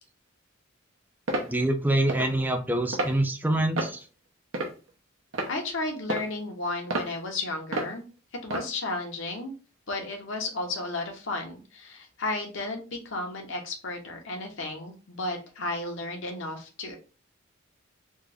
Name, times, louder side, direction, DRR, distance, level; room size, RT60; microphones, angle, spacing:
sound 1, 1.3-1.5 2.1-2.3 2.9-3.1 3.8-4.0 4.5-4.9 5.3-5.5 6.1-6.3 6.9-7.1 7.7-7.9 8.5-8.7, right 2 dB, 80° right, 0.9 m, -30 dB
voice 1, 1.4-4.0, right 1 dB, 10° right, 6 dB, 0.4 m, -25 dB
voice 2, 5.5-8.0 8.4-9.5 9.9-16.9, left 2 dB, 70° left, 2 dB, 1.1 m, -33 dB
3.3 x 2.5 x 3.4 m, 0.34 s
head